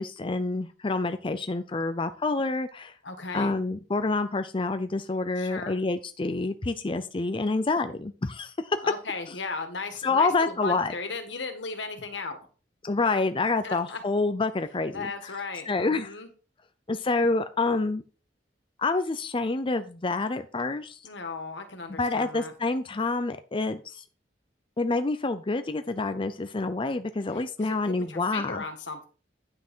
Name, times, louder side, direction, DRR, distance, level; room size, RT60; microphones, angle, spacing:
voice 1, 0.0-2.9 3.3-8.8 10.0-10.9 12.8-15.1 15.7-16.1 16.9-18.0 18.8-21.0 21.9-24.0 24.8-28.6, left 3 dB, 30° left, 9 dB, 0.6 m, -27 dB
voice 2, 3.0-3.5 5.4-5.8 8.8-12.4 13.6-14.0 14.9-16.3 21.0-22.5 27.3-29.0, left 4 dB, 85° left, 6 dB, 1.8 m, -36 dB
9.8 x 5.9 x 4.5 m, 0.36 s
head